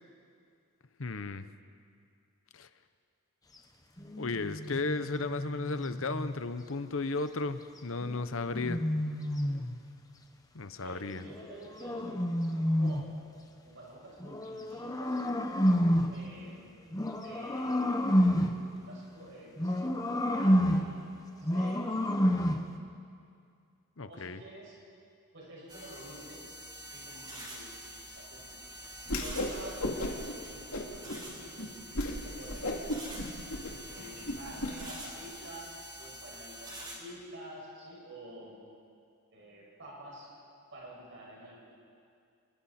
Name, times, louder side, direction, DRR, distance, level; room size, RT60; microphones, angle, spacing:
voice 1, 1.0-1.4 2.5-2.7 4.2-8.8 10.5-11.2 24.0-24.4, left 3 dB, 60° left, 11 dB, 0.9 m, -34 dB
sound 1, 4.0-6.4 8.0-9.8 11.2-13.2 14.2-16.2 16.9-18.7 19.6-21.0 21.4-22.7, equal, 15° left, 1.1 m, -29 dB
voice 2, 10.8-13.0 13.6-15.2 16.1-16.8 17.2-21.0 21.3-22.5 24.1-24.7 25.3-26.5 26.9-27.7 28.0-28.4 28.8-31.7 32.2-33.0 33.9-35.7 36.0-38.6 39.3-40.3 40.7-41.6, right 1 dB, 55° right, -5 dB, 6.3 m, -49 dB
sound 2, 25.7-37.0, right 1 dB, 20° right, 3.8 m, -46 dB
Whoosh swoosh swish, 29.0-29.5 29.8-30.3 30.7-31.2 31.6-31.7 31.9-32.1 32.5-34.7, left 1 dB, 75° left, 2.8 m, -34 dB
29.5 x 22.5 x 4.3 m, 2.3 s
head